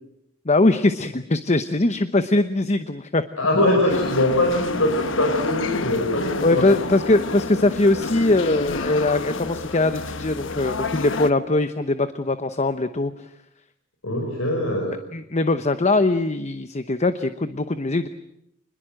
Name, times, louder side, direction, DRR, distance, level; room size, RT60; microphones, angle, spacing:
voice 1, 0.5-3.2 6.4-13.1 15.1-18.1, left 2 dB, 35° left, 11 dB, 0.9 m, -21 dB
voice 2, 3.4-6.6 14.0-15.0, left 1 dB, 90° left, 1 dB, 5.9 m, -22 dB
sound 1, 3.9-11.3, left 3 dB, 65° left, 1.1 m, -29 dB
27.5 x 21.5 x 7.7 m, 0.77 s
head